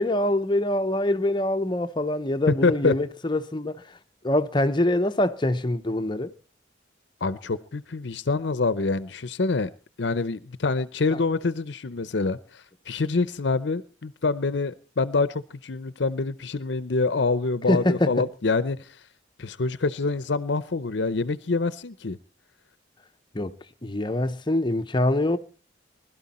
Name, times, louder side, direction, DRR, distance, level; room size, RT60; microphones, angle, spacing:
voice 1, 0.0-3.8 4.2-6.3 11.1-11.2 17.7-18.2 23.3-23.5 23.8-25.4, left 1 dB, 25° left, 0.8 m, -24 dB
voice 2, 2.5-2.9 7.2-9.7 10.0-18.8 19.4-22.2, left 3 dB, 65° left, 0.7 m, -26 dB
20.5 x 12.5 x 4.3 m
head